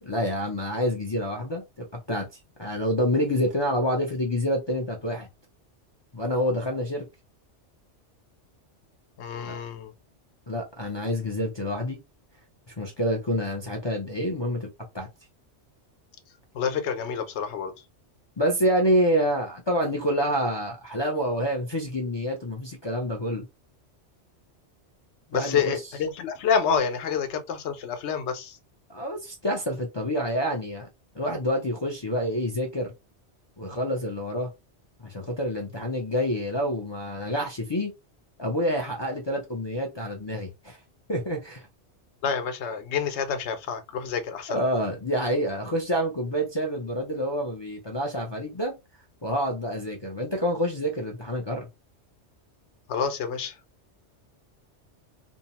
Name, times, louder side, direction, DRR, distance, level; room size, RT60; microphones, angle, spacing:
voice 1, 0.0-5.3 6.1-7.0 9.4-9.6 10.5-12.0 12.7-14.7 14.9-15.1 18.4-23.5 25.3-25.8 28.9-30.9 31.1-32.9 33.6-34.5 35.0-37.9 38.4-40.8 41.1-41.7 44.5-48.7 49.2-51.7, equal, 40° left, 0.4 m, -27 dB
voice 2, 9.2-9.9 16.5-17.7 25.3-28.6 42.2-44.6 52.9-53.6, left 6 dB, 70° left, 0.9 m, -28 dB
2.7 x 2.1 x 2.8 m
omnidirectional pair, 1.2 m